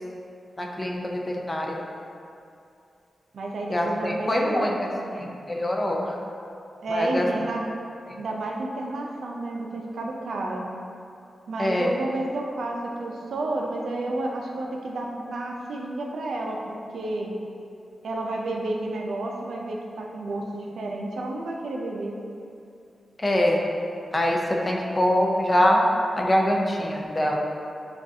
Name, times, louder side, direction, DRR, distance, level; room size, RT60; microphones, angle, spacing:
voice 1, 0.6-1.8 3.7-4.9 5.2-6.2 6.9-7.3 8.1-8.2 11.6-11.9 23.2-23.6 24.1-25.9 26.2-27.4, left 1 dB, 25° left, 0 dB, 0.4 m, -24 dB
voice 2, 3.3-5.3 6.8-7.6 8.2-10.7 11.5-17.3 18.0-22.2, right 2 dB, 85° right, 0 dB, 0.4 m, -31 dB
6.3 x 2.4 x 2.7 m, 2.6 s
wide cardioid pair, 115°, 0 cm